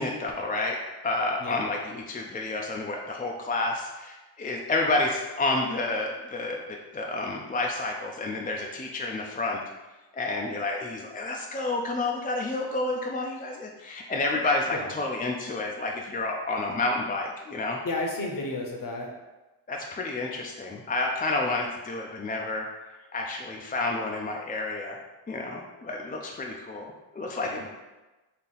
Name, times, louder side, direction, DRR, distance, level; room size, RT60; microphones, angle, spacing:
voice 1, 0.0-9.6 10.1-17.8 19.7-22.7 23.1-25.0 25.3-27.7, left 2 dB, 20° left, 0 dB, 0.4 m, -30 dB
voice 2, 17.8-19.1 27.4-27.7, left 2 dB, 50° left, 1 dB, 0.8 m, -32 dB
4.1 x 2.7 x 4.0 m, 1.1 s
wide cardioid pair, 105°, 43 cm